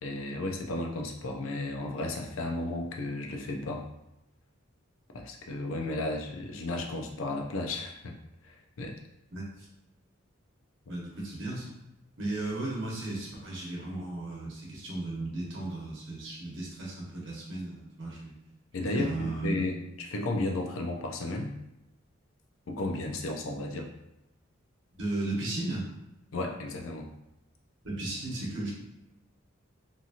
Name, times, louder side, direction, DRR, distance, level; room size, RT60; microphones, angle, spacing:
voice 1, 0.0-3.9 5.1-8.2 8.4-9.0 18.7-21.5 22.7-23.9 26.3-27.1, left 2 dB, 80° left, 2 dB, 0.5 m, -34 dB
voice 2, 9.3-9.7 10.9-11.7 12.2-18.3 18.8-19.6 24.9-25.9 27.8-28.7, right 2 dB, 60° right, -4 dB, 0.9 m, -35 dB
2.8 x 2.7 x 2.4 m, 0.91 s
head